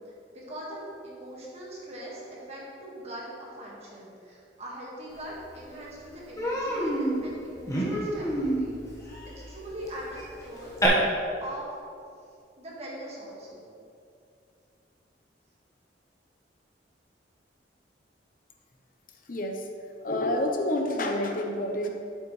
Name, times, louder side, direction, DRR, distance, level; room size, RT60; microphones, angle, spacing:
voice 1, 0.0-9.0 9.3-11.1 11.4-11.8 12.6-13.6, equal, 35° right, -5 dB, 1.8 m, -41 dB
Human voice, 5.4-5.5 5.8-6.0 6.4-10.9, right 1 dB, 20° left, 1.4 m, -30 dB
voice 2, 19.3-19.7 20.0-21.9, left 1 dB, 50° left, 2 dB, 0.9 m, -28 dB
8.3 x 8.2 x 3.2 m, 2.4 s
head